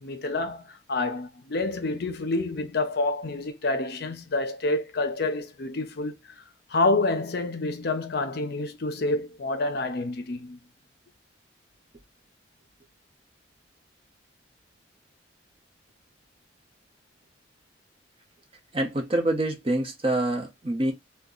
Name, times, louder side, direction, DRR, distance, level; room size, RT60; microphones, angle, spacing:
voice 1, 0.0-6.4 6.7-10.6, left 2 dB, 55° left, 0.6 m, -28 dB
voice 2, 18.7-20.9, right 1 dB, 30° right, 0.9 m, -26 dB
2.8 x 2.2 x 3.7 m
head